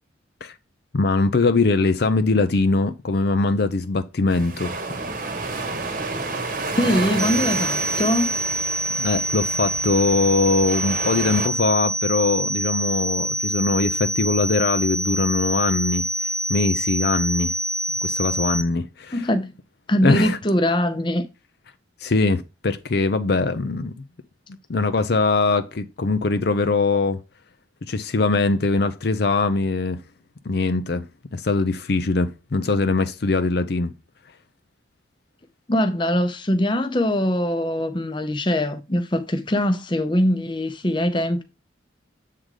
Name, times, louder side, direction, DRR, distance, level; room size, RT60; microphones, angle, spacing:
voice 1, 0.9-4.7 9.0-17.5 18.0-19.3 20.0-20.4 22.0-24.0 24.7-27.2 27.9-30.0 30.5-33.9, left 3 dB, 55° left, 0.5 m, -22 dB
sound 1, 4.3-11.5, right 3 dB, 45° right, 1.1 m, -30 dB
voice 2, 6.8-8.3 19.1-19.5 19.9-21.2 35.7-41.4, left 1 dB, 25° left, 0.7 m, -22 dB
sound 2, 7.2-18.6, right 1 dB, 15° right, 0.7 m, -26 dB
7.7 x 3.8 x 4.8 m
head